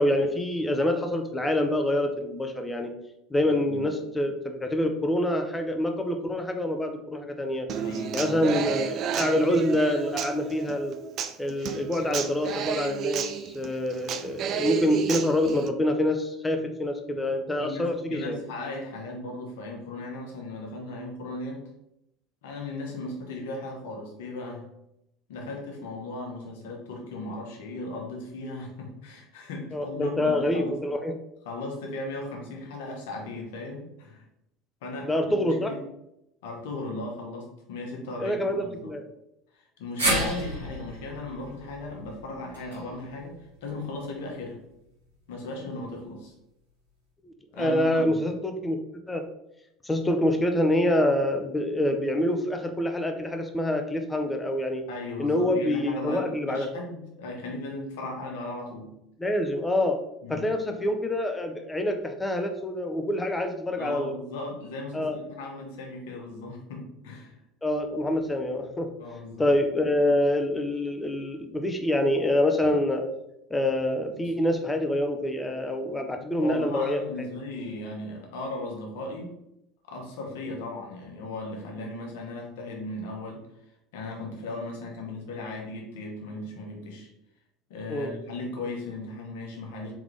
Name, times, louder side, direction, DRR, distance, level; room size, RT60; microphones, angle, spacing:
voice 1, 0.0-2.9 3.3-7.7 8.1-11.0 11.4-18.4 29.7-31.1 35.0-35.7 38.2-39.1 47.2-48.8 49.1-49.2 49.8-54.8 55.2-56.7 59.2-60.0 60.3-64.1 64.9-65.2 67.6-68.9 69.4-73.0 73.5-77.0 87.9-88.1, left 1 dB, 15° left, 5 dB, 0.7 m, -26 dB
voice 2, 7.7-8.4 17.6-21.6 22.4-24.7 25.3-30.8 31.4-34.2 34.8-35.8 36.4-38.9 39.5-44.6 45.3-46.3 47.5-48.2 54.9-58.9 60.2-60.5 63.8-67.4 69.0-69.5 74.1-74.2 76.2-79.4 79.9-83.5 83.9-87.1 87.7-89.9, left 2 dB, 70° left, 0 dB, 1.1 m, -37 dB
Human voice / Acoustic guitar, 7.7-15.7, right 8 dB, 50° right, 0.3 m, -32 dB
sound 1, 40.0-44.2 44.6-44.7 45.9-46.0, right 1 dB, 90° right, 1.5 m, -32 dB
3.6 x 3.6 x 3.3 m, 0.82 s
hypercardioid pair, 70°, 0 cm